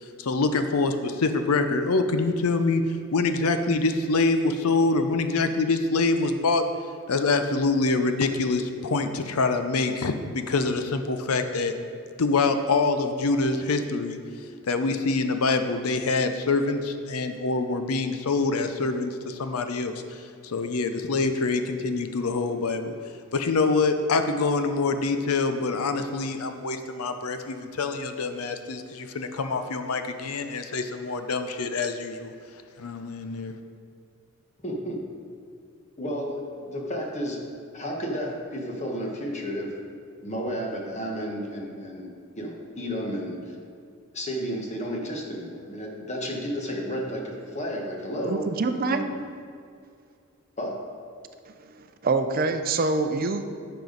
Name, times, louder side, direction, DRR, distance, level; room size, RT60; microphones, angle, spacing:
voice 1, 0.2-6.6 7.1-11.7 12.2-14.2 14.7-22.9 23.3-32.3 32.8-33.5, left 3 dB, 85° left, 8 dB, 0.6 m, -25 dB
voice 2, 34.6-35.0 36.0-37.4 37.7-39.7 40.2-43.5 44.1-48.5 48.8-49.1 50.6-50.8, equal, 30° left, 0 dB, 1.2 m, -32 dB
voice 3, 48.2-49.0 51.5-53.5, right 3 dB, 40° right, 8 dB, 0.5 m, -26 dB
10.5 x 6.9 x 4.0 m, 2.3 s
head